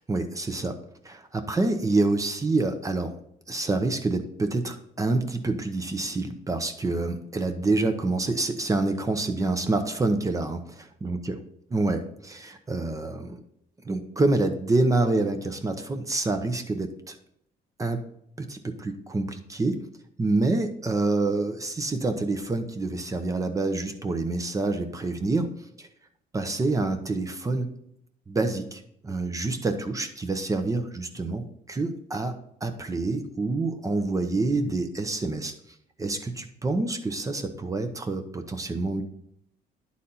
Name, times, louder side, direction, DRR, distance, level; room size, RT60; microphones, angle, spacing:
voice 1, 0.1-0.8 1.0-3.1 3.5-11.4 11.7-13.4 13.8-17.2 17.8-18.0 18.4-19.8 20.2-25.5 25.8-25.9 26.3-27.7 28.3-32.3 32.6-35.5 36.0-39.0, right 2 dB, 20° right, 7 dB, 0.8 m, -27 dB
10.0 x 4.1 x 4.0 m, 0.71 s
cardioid pair, 110°, 17 cm